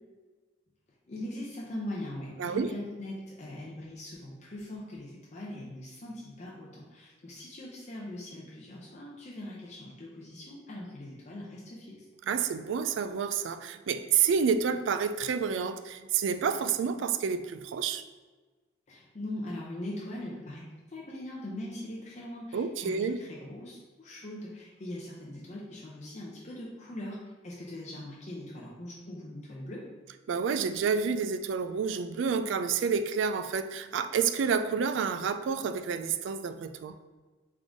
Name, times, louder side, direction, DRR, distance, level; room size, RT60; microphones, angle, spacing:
voice 1, 1.1-12.0 18.9-27.2 27.4-29.8, left 1 dB, 35° left, -5 dB, 0.6 m, -41 dB
voice 2, 2.4-2.7 12.3-18.0 22.5-23.2 30.3-36.9, right 6 dB, 70° right, 10 dB, 0.3 m, -29 dB
3.7 x 3.7 x 3.5 m, 1.3 s
head